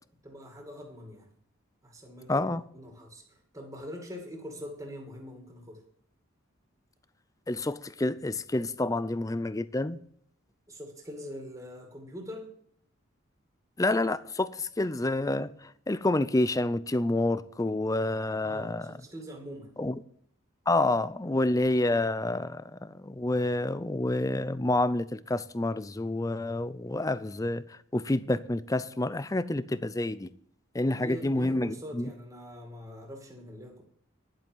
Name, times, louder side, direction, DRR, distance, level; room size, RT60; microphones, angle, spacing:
voice 1, 0.2-1.3 1.8-5.8 10.7-12.5 18.4-19.8 30.8-33.8, equal, 15° right, 2.4 m, -43 dB
voice 2, 2.3-2.6 7.5-10.0 13.8-18.9 19.8-20.0 20.7-30.3 30.7-32.1, left 2 dB, 15° left, 0.4 m, -28 dB
11.0 x 7.7 x 7.3 m
head